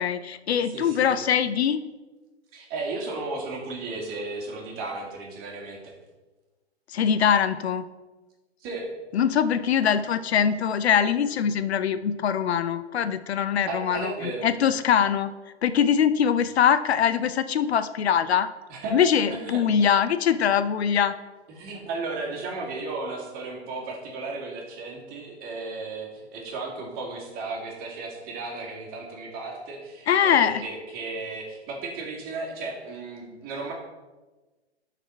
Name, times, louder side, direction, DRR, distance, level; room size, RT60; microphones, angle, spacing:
voice 1, 0.0-1.8 6.9-7.9 9.1-15.3 15.6-18.5 18.9-21.1 30.1-30.6, left 8 dB, 70° left, 12 dB, 0.6 m, -22 dB
voice 2, 0.7-1.1 2.5-5.9 8.6-8.9 13.7-14.5 18.7-19.6 21.5-33.7, right 3 dB, 30° right, -1 dB, 2.0 m, -34 dB
12.0 x 4.2 x 4.1 m, 1.2 s
hypercardioid pair, 130°, 33 cm